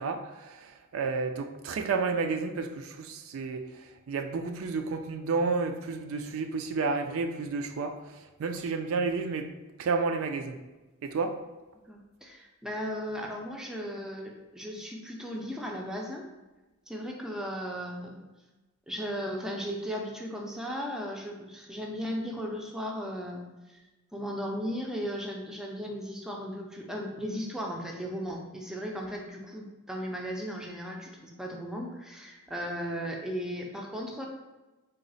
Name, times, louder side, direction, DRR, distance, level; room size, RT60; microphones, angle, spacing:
voice 1, 0.0-9.5 9.8-10.6 11.0-11.4, right 4 dB, 70° right, 6 dB, 0.3 m, -31 dB
voice 2, 11.9-16.3 16.9-18.2 18.9-23.8 24.1-34.3, equal, 5° right, -1 dB, 0.4 m, -36 dB
3.9 x 2.1 x 3.9 m, 1.1 s
head